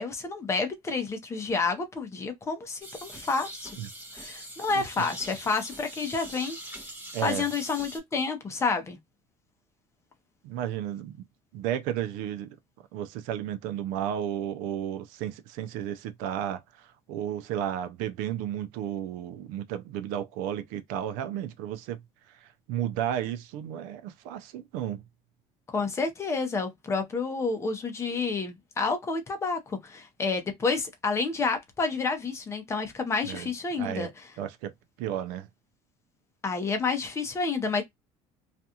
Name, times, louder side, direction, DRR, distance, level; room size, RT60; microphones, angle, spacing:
voice 1, 0.0-3.7 4.1-6.6 7.2-9.0 25.7-34.1 36.4-37.8, left 4 dB, 20° left, 0.7 m, -29 dB
sound 1, 2.8-8.0, right 1 dB, 15° right, 1.1 m, -43 dB
voice 2, 7.1-7.5 10.4-11.2 11.5-12.6 12.9-22.0 22.3-25.0 33.2-33.5 33.8-34.1 34.4-34.7 35.0-35.5, right 10 dB, 75° right, 0.5 m, -33 dB
2.5 x 2.3 x 2.7 m
cardioid pair, 145°, 14 cm